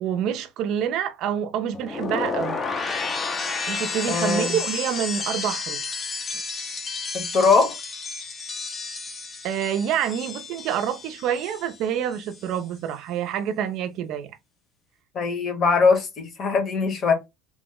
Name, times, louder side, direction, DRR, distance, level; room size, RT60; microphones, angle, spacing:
voice 1, 0.0-2.6 3.7-6.0 9.4-14.4, right 9 dB, 55° right, 0.4 m, -27 dB
sound 1, 1.7-11.8 12.1-12.6, left 4 dB, 20° left, 0.5 m, -31 dB
voice 2, 4.1-4.6 7.1-7.8 15.1-17.1, left 4 dB, 40° left, 0.9 m, -21 dB
3.0 x 2.0 x 3.5 m
cardioid pair, 140°, 0 cm